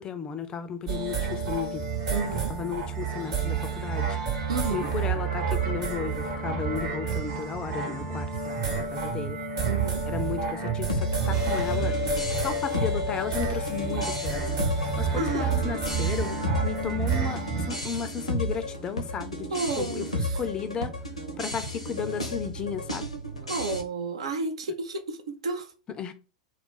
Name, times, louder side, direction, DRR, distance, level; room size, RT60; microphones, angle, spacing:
voice 1, 0.0-1.9 2.5-4.2 4.7-9.4 10.1-11.9 12.4-14.6 15.0-16.3 16.6-19.5 19.8-20.9 21.4-23.1 26.0-26.1, left 6 dB, 25° left, 0.4 m, -34 dB
sound 1, 0.9-17.7, right 6 dB, 55° right, 1.0 m, -30 dB
voice 2, 2.1-2.6 4.5-4.9 9.7-10.1 15.2-15.8 19.5-20.4 23.5-25.7, right 3 dB, 70° right, 0.5 m, -31 dB
sound 2, 10.9-23.8, left 1 dB, 90° left, 0.6 m, -33 dB
sound 3, 11.3-18.4, left 9 dB, 25° right, 1.1 m, -35 dB
2.3 x 2.1 x 3.8 m
figure-of-eight pair, 85°, 3 cm